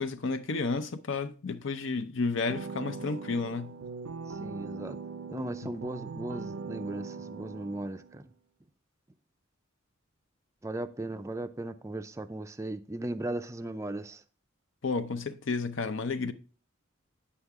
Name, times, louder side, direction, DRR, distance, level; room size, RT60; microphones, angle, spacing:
voice 1, 0.0-3.7 14.8-16.3, left 4 dB, 65° left, 0.7 m, -31 dB
sound 1, 2.5-8.2, right 4 dB, 80° right, 0.5 m, -41 dB
voice 2, 4.3-5.0 5.3-8.3 10.6-14.2, right 1 dB, 15° right, 0.4 m, -37 dB
9.7 x 5.7 x 3.5 m
head